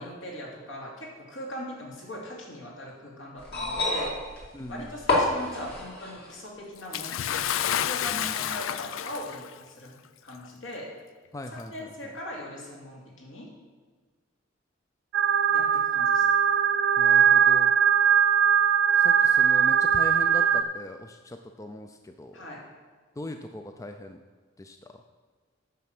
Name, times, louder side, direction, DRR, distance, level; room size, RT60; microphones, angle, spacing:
voice 1, 0.0-4.1 4.7-10.0 10.2-10.9 11.5-13.5 15.5-16.2 22.3-22.6, equal, 75° left, -2 dB, 2.6 m, -40 dB
sound 1, 3.4-6.4 7.4-7.5, left 2 dB, 55° left, 2.2 m, -28 dB
voice 2, 4.5-4.9 11.3-11.9 17.0-17.7 19.0-22.4 23.2-24.2 24.6-24.8, left 1 dB, 15° left, 6 dB, 0.4 m, -39 dB
Bathtub (filling or washing) / Splash splatter, 6.9-9.5 10.5-10.6 11.5-11.6, left 10 dB, 90° left, 0.4 m, -30 dB
sound 2, 15.1-20.6, right 7 dB, 60° right, 0.4 m, -20 dB
9.2 x 6.5 x 6.0 m, 1.5 s
head